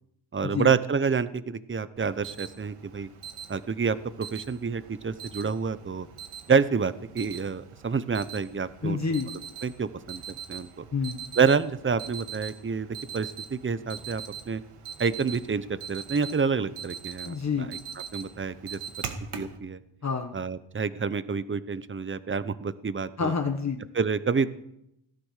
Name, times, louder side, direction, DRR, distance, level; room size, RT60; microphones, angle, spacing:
voice 1, 0.3-3.1 3.5-6.1 6.5-9.0 9.6-10.2 10.5-10.8 11.4-14.6 15.0-17.8 18.1-19.1 19.3-19.8 20.3-23.3 23.9-24.5, right 5 dB, 25° right, 15 dB, 0.9 m, -28 dB
Alarm, 2.0-19.6, right 7 dB, 85° right, 2.1 m, -42 dB
voice 2, 8.8-9.3 10.9-11.2 17.2-17.7 20.0-20.3 23.2-23.8, left 5 dB, 35° left, 4 dB, 1.3 m, -28 dB
17.5 x 12.5 x 6.6 m, 0.80 s
cardioid pair, 105°, 50 cm